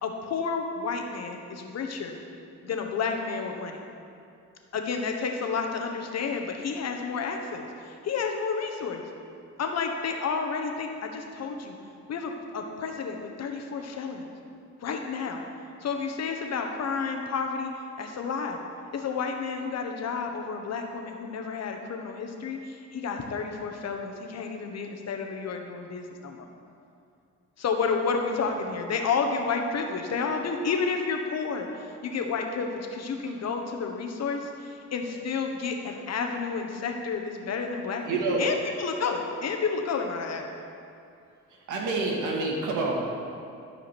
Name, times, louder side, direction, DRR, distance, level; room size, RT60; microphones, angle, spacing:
voice 1, 0.0-2.2 2.6-3.8 4.7-9.0 9.6-11.8 12.1-14.3 14.8-15.4 15.8-17.7 18.0-18.6 18.9-26.5 27.6-31.7 32.0-38.0 38.4-40.5, left 5 dB, 60° left, 3 dB, 1.2 m, -31 dB
voice 2, 38.0-38.5 41.5-42.9, right 3 dB, 80° right, -1 dB, 1.9 m, -28 dB
12.5 x 5.0 x 6.1 m, 2.5 s
cardioid pair, 90°, 30 cm